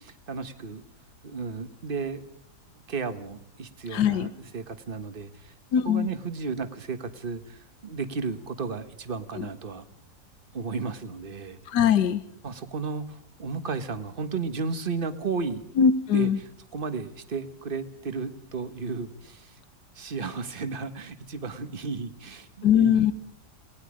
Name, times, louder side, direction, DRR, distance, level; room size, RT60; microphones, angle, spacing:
voice 1, 0.3-0.8 1.2-2.2 2.7-5.5 5.8-9.8 10.5-11.6 12.4-15.6 16.1-16.3 16.7-19.6 19.9-23.0, right 4 dB, 35° right, 9 dB, 1.4 m, -33 dB
voice 2, 3.9-4.3 5.7-6.1 9.3-9.5 11.7-12.2 15.8-16.4 22.6-23.1, left 8 dB, 80° left, 11 dB, 1.6 m, -21 dB
29.0 x 19.0 x 5.1 m, 0.68 s
omnidirectional pair, 1.8 m